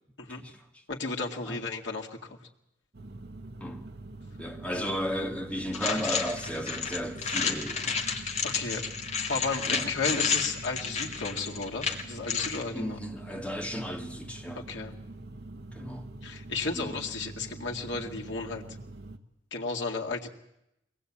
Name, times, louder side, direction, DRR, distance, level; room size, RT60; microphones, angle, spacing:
voice 1, 0.9-2.4 5.9-6.1 8.4-8.8 9.3-13.0 14.7-14.9 16.2-18.6 19.5-20.3, left 4 dB, 85° left, 2.1 m, -33 dB
sound 1, 2.9-19.2, right 2 dB, 60° right, 1.4 m, -44 dB
voice 2, 4.4-8.0 9.6-9.9 12.7-14.8 15.7-16.1 16.7-17.0, equal, 5° left, 2.0 m, -34 dB
sound 2, 5.7-12.6, left 6 dB, 40° left, 2.1 m, -31 dB
23.0 x 18.5 x 8.6 m
head